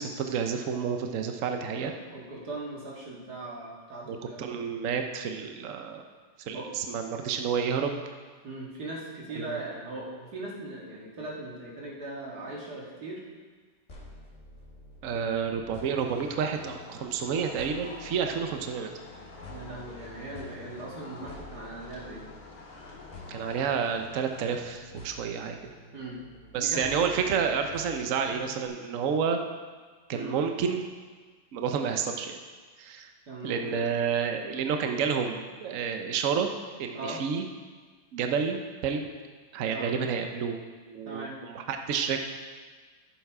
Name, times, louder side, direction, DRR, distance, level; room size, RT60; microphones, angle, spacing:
voice 1, 0.0-1.9 4.1-6.0 6.5-8.0 9.4-9.5 15.0-18.9 23.3-25.6 26.5-29.4 30.1-30.9 31.5-32.4 32.8-33.1 33.4-36.5 36.8-37.4 38.1-39.1 39.5-40.6 40.9-42.2, right 6 dB, 75° right, 5 dB, 0.7 m, -30 dB
voice 2, 1.8-4.6 6.5-6.7 8.4-13.2 15.1-15.4 19.5-22.2 25.9-26.2 26.5-26.8 28.3-28.5 30.1-30.4 33.3-33.8 36.9-37.2 39.7-40.0 41.1-41.4, right 2 dB, 50° right, -4 dB, 2.4 m, -39 dB
sound 1, 13.9-28.7, left 2 dB, 30° left, 1.6 m, -49 dB
sound 2, 16.0-24.6, left 3 dB, 80° left, 2.5 m, -48 dB
12.0 x 7.3 x 4.8 m, 1.4 s
omnidirectional pair, 2.3 m